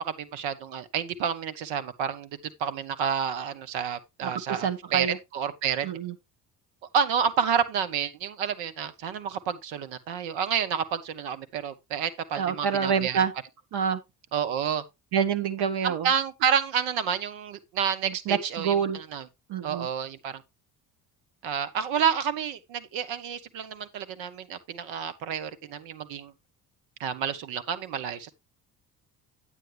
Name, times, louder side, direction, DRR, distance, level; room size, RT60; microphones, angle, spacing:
voice 1, 0.0-2.3 2.6-5.9 6.9-13.2 14.3-14.8 15.8-19.3 19.6-20.4 21.4-26.3 27.0-28.3, right 7 dB, 70° right, 1.3 m, -29 dB
voice 2, 4.2-5.2 5.8-6.1 12.4-13.3 13.7-14.0 15.1-16.1 18.3-19.0 19.5-19.9, right 7 dB, 55° right, 1.4 m, -27 dB
9.3 x 7.9 x 3.2 m
hypercardioid pair, 55°, 47 cm